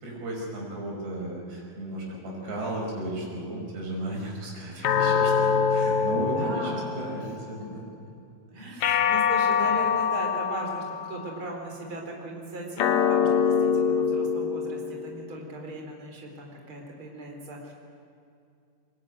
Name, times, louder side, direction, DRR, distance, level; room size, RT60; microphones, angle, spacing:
voice 1, 0.0-7.9 8.6-9.0, right 1 dB, 80° right, -2 dB, 7.7 m, -35 dB
sound 1, 4.8-7.4 8.8-11.4 12.8-15.4, left 6 dB, 70° left, 1.8 m, -25 dB
voice 2, 6.3-7.2 8.5-17.7, right 2 dB, 30° right, 0 dB, 4.5 m, -38 dB
23.0 x 20.5 x 9.4 m, 2.5 s
omnidirectional pair, 4.7 m